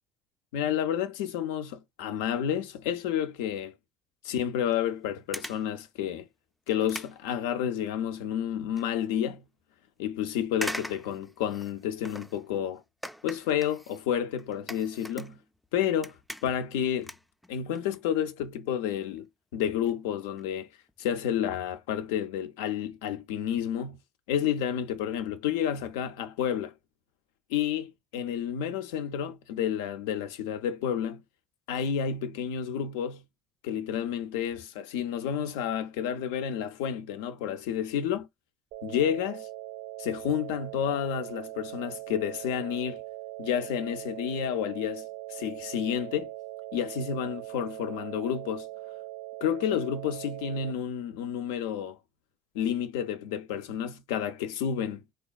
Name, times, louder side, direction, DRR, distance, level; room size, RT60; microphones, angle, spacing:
voice 1, 0.5-3.7 4.2-6.2 6.7-9.4 10.0-12.8 13.2-15.4 15.7-16.2 16.4-17.1 17.5-19.3 19.5-20.7 21.0-24.0 24.3-26.7 27.5-31.2 31.7-33.2 33.6-38.3 38.8-39.5 40.0-43.0 43.4-45.0 45.3-46.3 46.7-48.7 49.4-52.0 52.5-55.0, left 9 dB, 80° left, 0.3 m, -30 dB
sound 1, 4.7-4.9 5.3-5.7 6.2-6.3 6.7-8.0 8.4-8.9 9.3-9.4 10.5-12.5 13.0-15.7 15.9-16.7 17.0-18.0 18.3-18.5 19.2-19.3 19.5-19.6 19.9-20.0 20.2-20.5 20.9-21.0 21.3-21.4, equal, ahead, 0.3 m, -41 dB
sound 2, 38.7-50.7, right 17 dB, 80° right, 0.5 m, -41 dB
3.3 x 2.2 x 2.2 m
hypercardioid pair, 65°, 0 cm